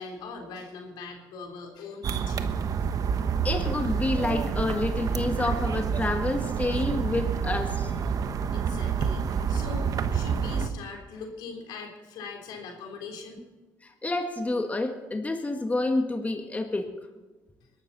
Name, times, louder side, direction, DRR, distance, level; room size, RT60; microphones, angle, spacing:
voice 1, 0.0-2.5 8.1-8.2 8.5-13.5, left 4 dB, 80° left, 2 dB, 3.6 m, -41 dB
sound 1, 2.0-10.7, right 6 dB, 55° right, 1.2 m, -28 dB
voice 2, 3.4-7.9 14.0-16.9, left 2 dB, 20° left, 4 dB, 1.7 m, -28 dB
21.5 x 12.5 x 4.2 m, 1.2 s
supercardioid pair, 75°, 7 cm